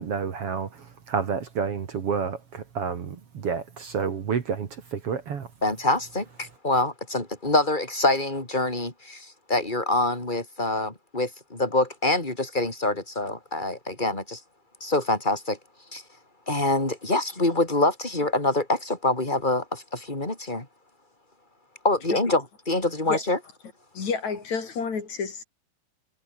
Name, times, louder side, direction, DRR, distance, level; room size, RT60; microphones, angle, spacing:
voice 1, 0.0-5.5, right 6 dB, 50° right, 2.7 m, -30 dB
voice 2, 5.6-14.4 14.8-15.6 15.9-16.0 16.5-20.7 21.8-23.4, left 2 dB, 15° left, 4.5 m, -25 dB
voice 3, 23.9-25.4, left 5 dB, 65° left, 5.0 m, -29 dB
omnidirectional pair, 3.5 m